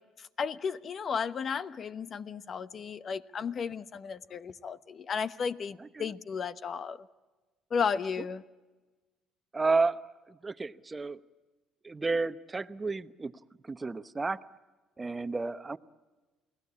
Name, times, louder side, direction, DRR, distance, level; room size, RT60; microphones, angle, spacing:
voice 1, 0.2-7.1 7.7-8.4, left 6 dB, 45° left, 1.1 m, -34 dB
voice 2, 5.8-6.1 9.5-11.2 11.8-13.3 13.6-14.4 15.0-15.8, right 3 dB, 20° right, 1.0 m, -31 dB
29.5 x 19.0 x 8.5 m
supercardioid pair, 90°, 0 cm